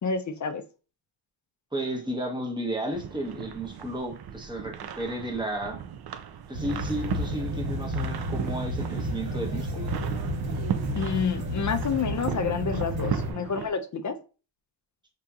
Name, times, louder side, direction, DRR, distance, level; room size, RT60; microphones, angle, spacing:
voice 1, 0.0-0.6 10.9-14.2, left 6 dB, 40° left, 0.4 m, -29 dB
voice 2, 1.7-5.8 6.5-9.9, right 1 dB, 10° right, 0.9 m, -33 dB
sound 1, 2.9-13.7, right 8 dB, 55° right, 0.5 m, -36 dB
sound 2, 6.5-13.3, equal, 70° right, 1.4 m, -31 dB
5.2 x 2.8 x 2.3 m
wide cardioid pair, 110°, 49 cm